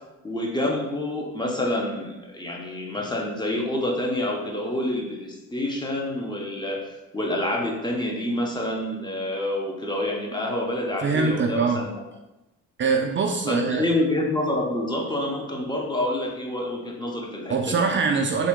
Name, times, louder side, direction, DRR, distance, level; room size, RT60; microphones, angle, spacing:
voice 1, 0.2-6.8 7.1-12.0 13.5-17.8, left 1 dB, 15° left, 0 dB, 0.7 m, -27 dB
voice 2, 11.0-11.8 12.8-13.9 17.5-18.5, right 5 dB, 40° right, 2 dB, 0.4 m, -23 dB
3.7 x 2.2 x 3.6 m, 1.0 s
cardioid pair, 90°, 30 cm